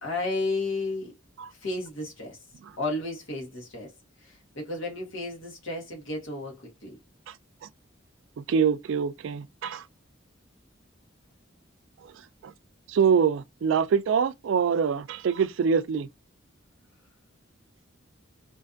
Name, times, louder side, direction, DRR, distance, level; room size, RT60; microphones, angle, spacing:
voice 1, 0.0-1.1 1.6-2.4 2.8-3.9 4.2-7.0, left 2 dB, 80° left, 1.0 m, -32 dB
voice 2, 8.4-9.8 12.4-12.5 12.9-16.1, right 6 dB, 70° right, 0.3 m, -24 dB
2.5 x 2.4 x 2.4 m
head